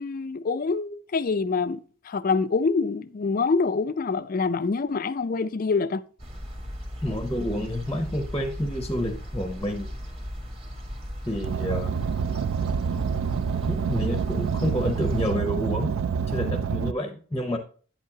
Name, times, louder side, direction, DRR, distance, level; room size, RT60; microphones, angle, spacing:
voice 1, 0.0-1.8 2.1-6.0, left 4 dB, 40° left, 0.3 m, -25 dB
sound 1, 6.2-15.3, equal, 25° right, 1.5 m, -37 dB
voice 2, 7.0-9.9 11.3-11.9 13.7-15.9 16.3-17.6, equal, 10° left, 0.7 m, -29 dB
Car, 11.4-16.9, right 6 dB, 65° right, 0.3 m, -27 dB
9.2 x 7.3 x 2.8 m
head